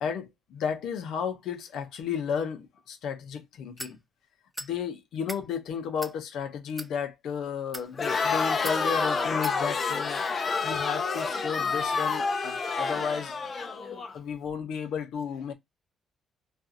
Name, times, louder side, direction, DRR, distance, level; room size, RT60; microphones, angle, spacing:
voice 1, 0.0-4.0 4.6-10.2 10.6-13.3 13.9-15.5, left 7 dB, 80° left, 0.7 m, -33 dB
sound 1, 3.8-4.0 4.5-4.7 5.1-5.4 6.0-6.2 6.7-6.9 7.6-7.9 8.6-8.8 9.4-9.6, equal, 5° right, 0.5 m, -39 dB
Crowd, 7.9-14.1, left 4 dB, 40° left, 0.6 m, -28 dB
2.5 x 2.4 x 2.6 m
cardioid pair, 90°, 0 cm